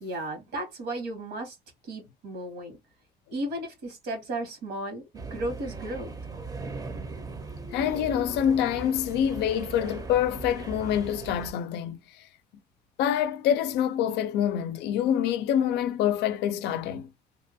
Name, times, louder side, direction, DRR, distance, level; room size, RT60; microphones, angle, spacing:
voice 1, 0.0-1.6 1.9-2.8 3.3-6.1, right 1 dB, 85° right, 1.6 m, -34 dB
sound 1, 5.1-11.5, right 3 dB, 20° right, 0.5 m, -39 dB
voice 2, 7.7-12.0 13.0-17.1, left 9 dB, 80° left, 0.4 m, -26 dB
2.9 x 2.2 x 2.6 m
cardioid pair, 110°, 17 cm